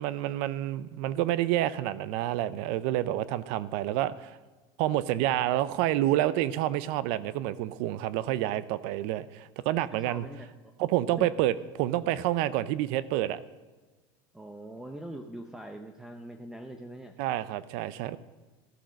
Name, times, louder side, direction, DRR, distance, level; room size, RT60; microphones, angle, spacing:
voice 1, 0.0-4.4 4.8-10.2 10.8-13.4 17.2-18.2, right 14 dB, 60° right, 17 dB, 0.5 m, -28 dB
voice 2, 10.0-10.7 11.2-11.3 14.3-17.1, right 1 dB, 5° right, 6 dB, 0.6 m, -42 dB
14.5 x 10.0 x 6.3 m, 1.3 s
cardioid pair, 165°, 11 cm